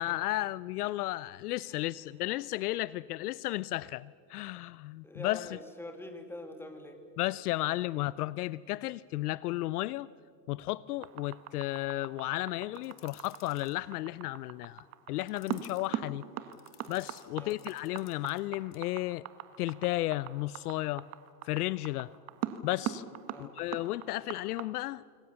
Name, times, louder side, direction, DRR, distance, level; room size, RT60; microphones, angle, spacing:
voice 1, 0.0-5.6 7.2-10.1 10.5-16.2 16.9-19.2 19.6-21.1 21.4-22.1 22.6-23.0 23.4-25.0, left 17 dB, 65° left, 20 dB, 0.6 m, -33 dB
voice 2, 5.0-7.0 7.7-7.8 17.4-17.6 23.3-23.6, left 1 dB, 5° left, 6 dB, 2.5 m, -45 dB
sound 1, 11.0-24.6, right 12 dB, 30° right, 1.5 m, -39 dB
sound 2, 12.7-13.8 15.2-15.9 16.5-18.4 18.7-18.9, left 11 dB, 30° left, 3.0 m, -58 dB
26.5 x 24.0 x 7.1 m, 2.2 s
supercardioid pair, 135°, 49 cm